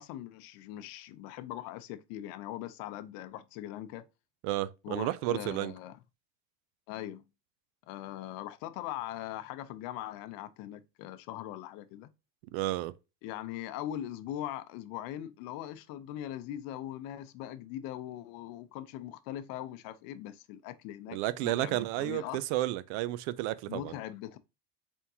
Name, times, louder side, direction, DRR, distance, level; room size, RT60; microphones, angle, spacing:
voice 1, 0.0-4.1 4.8-6.0 6.9-7.2 7.9-12.1 13.2-22.5 23.7-24.4, left 12 dB, 65° left, 0.6 m, -41 dB
voice 2, 4.4-5.7 12.5-12.9 21.1-23.9, right 15 dB, 70° right, 0.5 m, -32 dB
4.4 x 3.5 x 2.7 m
supercardioid pair, 115°, 37 cm